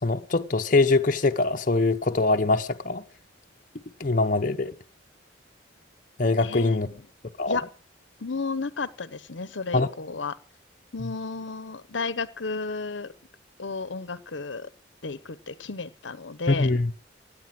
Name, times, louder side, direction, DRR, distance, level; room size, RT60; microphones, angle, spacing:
voice 1, 0.0-3.0 4.0-4.7 6.2-6.9 7.4-7.6 9.7-9.9 16.5-16.9, left 3 dB, 45° left, 0.8 m, -23 dB
voice 2, 6.4-7.0 7.5-7.7 8.2-10.4 10.9-13.1 13.6-14.7 15.0-16.7, left 4 dB, 75° left, 0.9 m, -33 dB
17.5 x 10.0 x 6.0 m
head